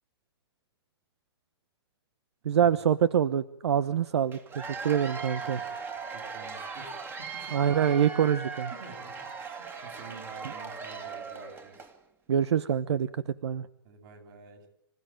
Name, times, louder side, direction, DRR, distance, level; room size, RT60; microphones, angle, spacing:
voice 1, 2.4-5.6 7.5-8.7 10.4-10.5 12.3-13.1 13.4-13.7, right 8 dB, 85° right, 15 dB, 0.9 m, -25 dB
Cheering / Applause / Crowd, 4.3-12.0, right 5 dB, 15° right, 2.1 m, -39 dB
voice 2, 5.4-7.6 8.7-11.8 13.8-14.7, right 4 dB, 50° right, 3 dB, 7.9 m, -49 dB
26.5 x 16.0 x 8.9 m, 0.76 s
hypercardioid pair, 145°, 14 cm